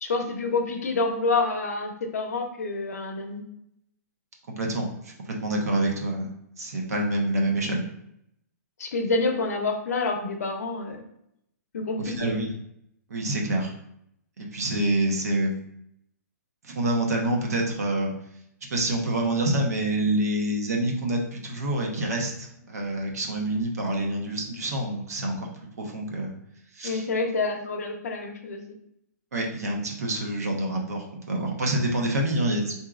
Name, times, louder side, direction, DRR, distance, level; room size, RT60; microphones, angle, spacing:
voice 1, 0.0-3.4 8.8-11.0 11.7-12.3 26.8-28.6, left 3 dB, 60° left, 3 dB, 0.7 m, -27 dB
voice 2, 4.6-6.3 6.6-7.8 12.0-12.6 13.1-13.7 14.4-15.5 16.6-18.1 18.7-26.3 26.7-27.0 29.3-32.7, right 1 dB, 60° right, 1 dB, 0.9 m, -27 dB
4.7 x 2.7 x 2.4 m, 0.75 s
hypercardioid pair, 175°, 9 cm